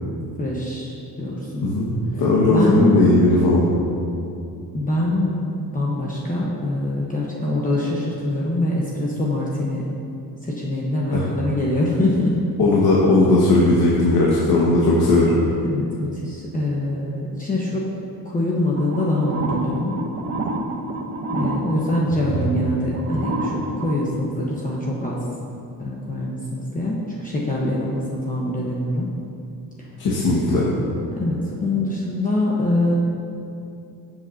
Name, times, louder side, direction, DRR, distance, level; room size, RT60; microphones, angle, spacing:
voice 1, 0.4-1.7 2.5-3.0 4.7-9.9 10.4-12.4 15.7-17.8 18.2-20.0 21.3-25.2 25.8-29.1 31.1-32.9, left 1 dB, 20° left, -5 dB, 1.0 m, -24 dB
voice 2, 1.6-3.7 11.1-11.3 12.6-15.3 30.0-30.7, left 2 dB, 70° left, -6 dB, 1.6 m, -17 dB
sound 1, 18.8-24.1, right 2 dB, 35° right, 0.9 m, -28 dB
16.0 x 7.7 x 2.8 m, 2.6 s
cardioid pair, 160°, 38 cm